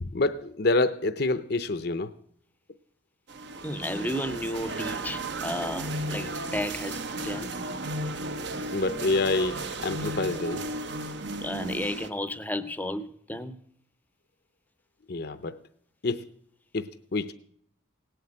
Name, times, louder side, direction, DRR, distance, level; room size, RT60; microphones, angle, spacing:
voice 1, 0.0-2.1 8.7-10.6 15.1-15.6 16.0-16.2 16.7-17.3, left 2 dB, 55° left, 0.6 m, -27 dB
sound 1, 3.3-12.1, right 2 dB, 60° right, 1.0 m, -34 dB
voice 2, 3.6-7.5 11.4-13.5, left 1 dB, 10° left, 0.6 m, -33 dB
17.5 x 7.9 x 8.6 m
head